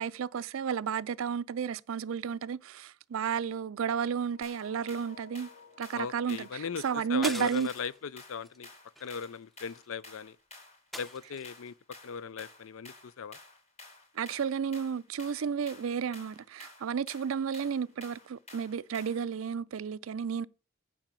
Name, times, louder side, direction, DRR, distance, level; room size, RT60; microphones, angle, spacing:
voice 1, 0.0-5.5 5.8-7.7 14.2-20.5, right 7 dB, 70° right, 0.4 m, -32 dB
sound 1, 4.3-9.1, left 5 dB, 55° left, 2.1 m, -57 dB
sound 2, 4.4-19.3, left 2 dB, 35° left, 2.9 m, -53 dB
voice 2, 5.9-8.7 9.0-10.4 10.9-11.7 12.0-13.4, left 6 dB, 75° left, 0.5 m, -38 dB
sound 3, 7.2-8.0 8.4-8.6 9.0-9.9 10.9-11.7, right 1 dB, ahead, 0.6 m, -42 dB
9.0 x 5.0 x 6.8 m
head